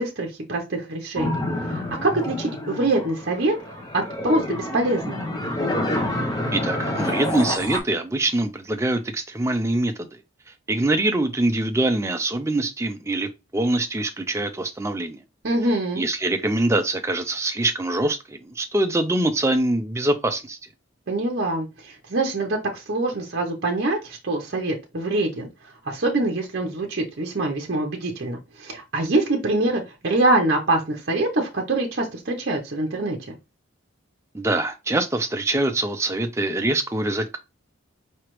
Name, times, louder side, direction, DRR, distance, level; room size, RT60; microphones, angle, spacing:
voice 1, 0.0-3.6 3.9-5.3 15.4-16.0 21.1-25.5 25.8-33.3, right 2 dB, 50° right, 0.7 m, -24 dB
sound 1, 1.2-7.8, left 1 dB, 20° left, 0.8 m, -28 dB
voice 2, 6.5-10.2 10.7-15.2 16.0-20.6 34.3-37.4, right 2 dB, 15° right, 0.4 m, -24 dB
4.8 x 3.2 x 3.0 m
head